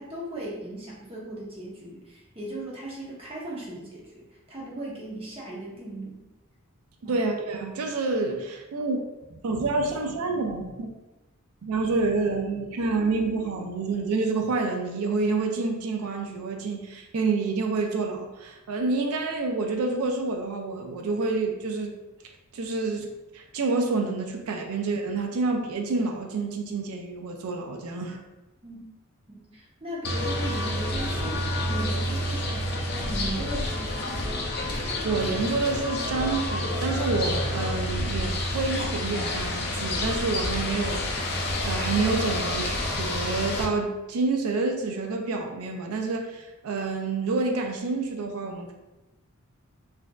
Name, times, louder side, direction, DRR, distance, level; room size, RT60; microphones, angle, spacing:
voice 1, 0.0-6.2 7.0-7.2 28.6-28.8 29.3-32.7 33.0-34.2, right 1 dB, 25° right, -5 dB, 0.8 m, -38 dB
voice 2, 7.0-9.0 9.3-10.9 11.6-22.0 22.5-28.2 34.6-48.7, right 3 dB, 85° right, 3 dB, 0.4 m, -28 dB
sound 1, 30.0-43.7, left 1 dB, 45° left, 0.5 m, -29 dB
4.2 x 2.6 x 2.3 m, 1.0 s
head